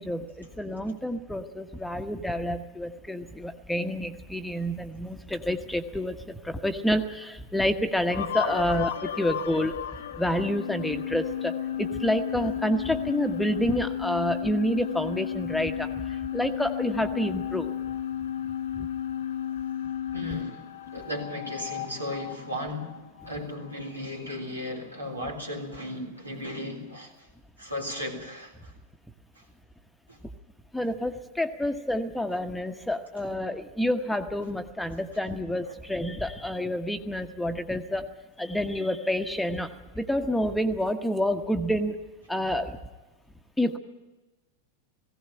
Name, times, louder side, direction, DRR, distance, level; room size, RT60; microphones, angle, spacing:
voice 1, 0.0-9.7 10.2-15.9 16.3-17.7 18.7-18.9 30.7-38.1 38.4-42.0 42.3-42.8 43.6-43.8, equal, 5° left, 7 dB, 1.1 m, -28 dB
sound 1, 8.1-23.9, left 10 dB, 60° left, 0.9 m, -33 dB
voice 2, 20.1-27.3 27.6-28.7 29.4-29.5 30.1-30.2 35.6-35.7, left 1 dB, 85° right, 0 dB, 3.7 m, -36 dB
18.5 x 16.5 x 10.0 m, 1.1 s
figure-of-eight pair, 90°, 0 cm